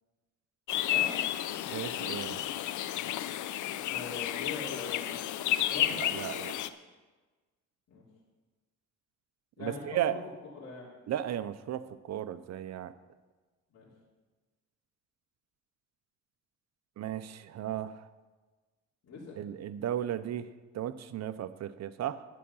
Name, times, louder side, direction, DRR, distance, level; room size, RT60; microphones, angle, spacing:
sound 1, 0.7-6.7, left 12 dB, 80° left, 0.6 m, -32 dB
voice 1, 1.7-2.4 5.9-6.5 9.6-10.2 11.1-12.9 17.0-18.1 19.3-22.2, right 11 dB, 60° right, 13 dB, 0.7 m, -35 dB
voice 2, 3.7-5.1 5.7-6.0 7.9-8.0 9.6-10.2 10.5-10.9 13.7-13.9 19.0-19.4, left 4 dB, 55° left, -5 dB, 3.1 m, -41 dB
11.5 x 9.7 x 5.6 m, 1.3 s
cardioid pair, 90°, 30 cm